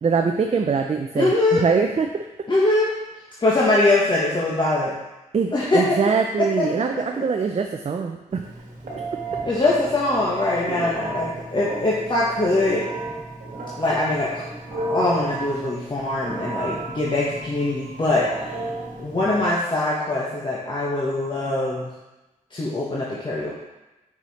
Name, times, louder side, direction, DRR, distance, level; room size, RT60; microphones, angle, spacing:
voice 1, 0.0-2.3 5.3-8.4, right 5 dB, 50° right, 4 dB, 0.5 m, -23 dB
voice 2, 1.2-1.6 2.5-2.9 3.4-5.0 5.5-6.0 6.4-6.6 7.1-7.5 9.4-12.9 13.8-14.4 14.7-18.5 19.0-21.9 22.5-23.5, left 2 dB, 35° left, -6 dB, 1.3 m, -22 dB
Telephone, 8.3-19.5, right 2 dB, 80° right, 1.5 m, -34 dB
5.6 x 4.8 x 4.1 m, 1.0 s
cardioid pair, 65°, 14 cm